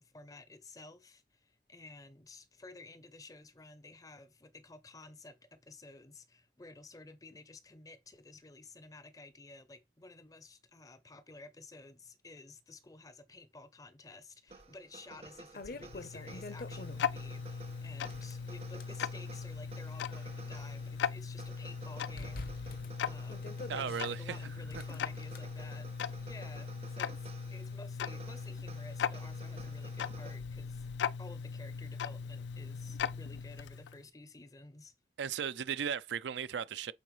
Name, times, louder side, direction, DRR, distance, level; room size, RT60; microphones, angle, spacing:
voice 1, 0.0-30.9 31.2-34.9, left 3 dB, 20° left, 0.5 m, -53 dB
sound 1, 14.5-30.4, right 4 dB, 35° right, 0.5 m, -54 dB
sound 2, 14.6-14.7 15.2-17.3 18.0-19.0 19.6-21.0 21.4-21.5 22.2-24.0 24.6-25.4, left 2 dB, 55° left, 0.7 m, -47 dB
Tick-tock, 15.7-34.0, left 6 dB, 80° left, 0.3 m, -39 dB
voice 2, 23.7-24.4 35.2-36.9, right 8 dB, 85° right, 0.4 m, -36 dB
8.4 x 3.9 x 3.1 m
head